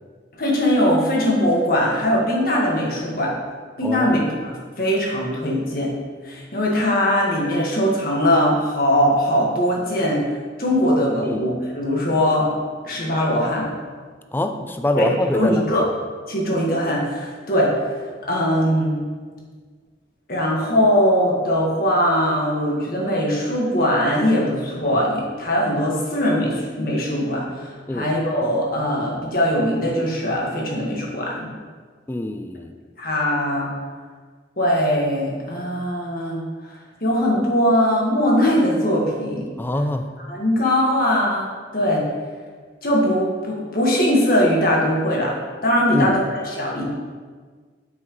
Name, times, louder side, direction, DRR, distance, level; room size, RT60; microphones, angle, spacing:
voice 1, 0.4-3.3 3.8-4.5 4.8-5.9 6.2-10.2 10.6-12.5 12.8-13.7 14.9-15.8 16.3-17.7 18.3-19.0 20.3-31.5 33.0-33.7 34.6-39.5 40.3-42.0 42.8-45.4 45.6-46.8, equal, 50° left, -3 dB, 1.5 m, -21 dB
voice 2, 3.8-4.2 11.2-11.5 14.3-15.9 27.9-28.1 32.1-32.7 39.6-40.1 45.9-46.2, left 1 dB, 10° left, 7 dB, 0.3 m, -24 dB
7.8 x 5.6 x 3.1 m, 1.5 s
head